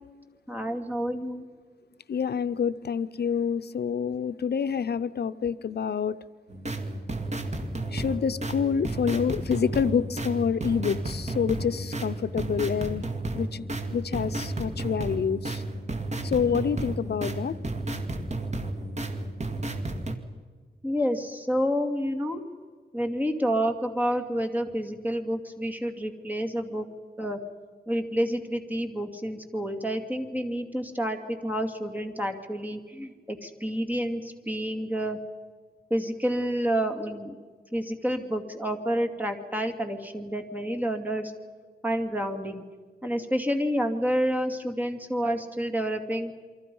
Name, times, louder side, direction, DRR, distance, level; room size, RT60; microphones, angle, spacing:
voice 1, 0.5-1.4 20.8-22.4 22.9-26.8 27.2-27.4 27.9-35.2 35.9-37.4 37.7-41.3 41.8-42.6 43.0-46.3, equal, 10° right, 5 dB, 2.5 m, -29 dB
voice 2, 2.1-6.2 7.9-13.0 13.3-13.6 13.9-15.6 16.2-17.5, left 7 dB, 70° left, 11 dB, 0.6 m, -27 dB
sound 1, 6.5-20.2, right 2 dB, 40° right, 2.1 m, -32 dB
28.5 x 24.0 x 5.5 m, 1.5 s
wide cardioid pair, 135°, 18 cm